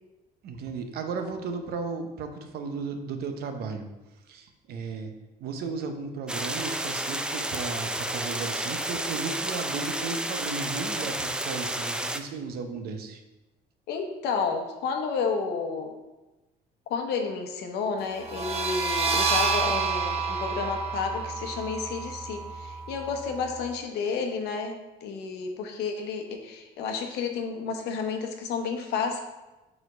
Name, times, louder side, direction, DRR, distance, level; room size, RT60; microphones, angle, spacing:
voice 1, 0.4-3.9 4.3-5.1 5.4-13.2, right 4 dB, 70° right, 6 dB, 0.8 m, -35 dB
sound 1, 6.3-12.2, right 1 dB, 5° right, 0.4 m, -31 dB
voice 2, 13.9-16.0 16.9-24.8 25.0-29.2, left 5 dB, 80° left, 4 dB, 0.9 m, -31 dB
sound 2, 18.2-23.7, right 4 dB, 35° right, 0.9 m, -29 dB
4.7 x 4.3 x 4.9 m, 1.0 s
cardioid pair, 110°, 17 cm